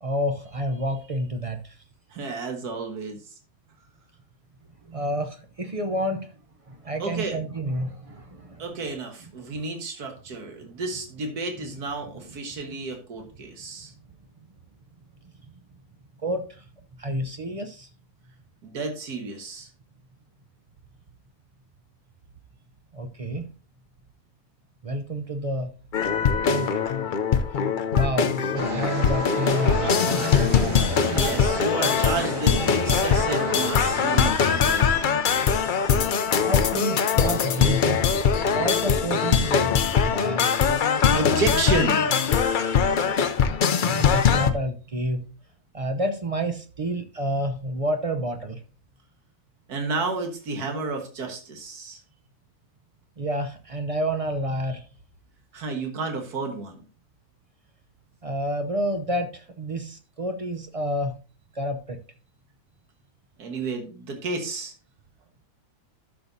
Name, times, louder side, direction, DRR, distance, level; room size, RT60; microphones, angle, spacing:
voice 1, 0.0-1.8 4.8-6.4 6.7-8.8 9.4-9.5 10.6-10.7 16.2-16.7 17.0-17.9 22.9-23.5 24.8-25.7 26.5-26.8 27.9-30.4 36.4-38.1 38.5-40.5 43.3-43.4 43.8-45.3 45.7-48.6 53.2-54.9 58.2-61.1 61.5-62.0, equal, 45° right, 7 dB, 0.4 m, -29 dB
voice 2, 2.1-3.4 7.0-7.4 8.6-13.9 18.6-19.7 31.1-35.4 36.3-36.4 41.1-42.8 49.7-52.0 55.5-56.8 63.4-64.7, right 3 dB, 85° right, 4 dB, 2.0 m, -31 dB
sound 1, 25.9-44.5, left 6 dB, 65° left, 0.5 m, -22 dB
sound 2, 28.5-34.3, right 3 dB, 60° right, 1.9 m, -32 dB
12.0 x 6.8 x 2.7 m, 0.34 s
omnidirectional pair, 1.6 m